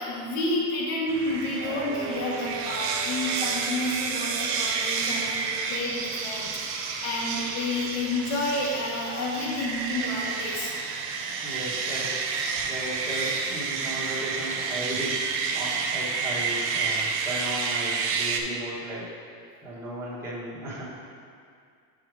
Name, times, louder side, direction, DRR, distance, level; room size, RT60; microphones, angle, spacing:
voice 1, 0.0-10.7, left 2 dB, 90° left, -4 dB, 1.5 m, -30 dB
sound 1, 1.1-18.4, right 5 dB, 35° right, 0.4 m, -30 dB
sound 2, 1.6-7.6 8.0-8.1 8.6-8.7, right 6 dB, 50° right, 1.2 m, -42 dB
voice 2, 11.4-12.2 12.6-21.1, right 1 dB, 5° right, -10 dB, 1.1 m, -36 dB
5.5 x 4.8 x 4.9 m, 2.2 s
cardioid pair, 160°, 44 cm